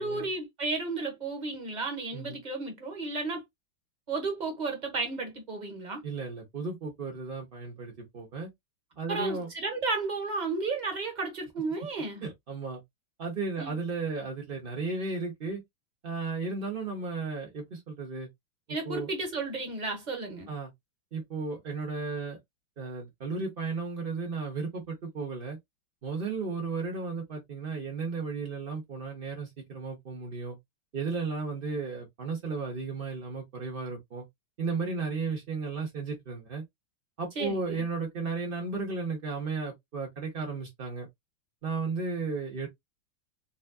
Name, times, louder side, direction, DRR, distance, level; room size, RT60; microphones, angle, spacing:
voice 1, 0.0-3.4 4.1-6.0 9.1-12.2 13.6-13.8 18.7-20.5 37.3-37.8, right 3 dB, 30° right, 0.9 m, -33 dB
voice 2, 6.0-8.5 9.0-9.5 12.2-12.8 13.2-15.6 16.0-18.3 18.7-19.1 20.5-20.7 21.1-22.4 22.8-25.6 26.0-30.6 30.9-34.2 34.6-36.6 37.2-41.1 41.6-42.7, right 4 dB, 65° right, 0.5 m, -34 dB
4.0 x 3.4 x 2.2 m
omnidirectional pair, 2.4 m